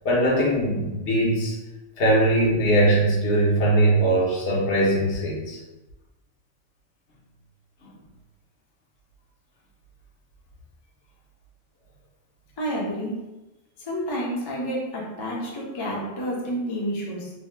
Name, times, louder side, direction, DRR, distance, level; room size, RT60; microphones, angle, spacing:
voice 1, 0.0-1.5 2.0-5.6, right 1 dB, 65° left, -4 dB, 1.0 m, -21 dB
voice 2, 12.6-13.3 13.8-17.3, equal, 30° left, -4 dB, 0.4 m, -29 dB
2.7 x 2.2 x 3.2 m, 1.0 s
omnidirectional pair, 1.3 m